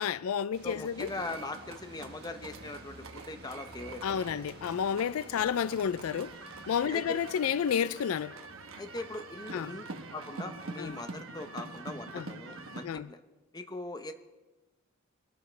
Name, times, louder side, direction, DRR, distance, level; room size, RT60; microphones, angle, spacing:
voice 1, 0.0-1.1 4.0-6.3 6.7-8.3 9.5-9.8 10.8-11.0 12.1-12.3 12.8-13.1, left 8 dB, 85° left, 0.4 m, -30 dB
sound 1, 0.5-7.7, right 2 dB, 50° right, 1.5 m, -53 dB
voice 2, 0.6-4.4 6.9-7.0 8.7-13.2 13.5-14.1, left 2 dB, 20° left, 0.7 m, -41 dB
sound 2, 1.0-12.9, right 3 dB, 70° right, 1.0 m, -45 dB
21.5 x 12.5 x 3.3 m
head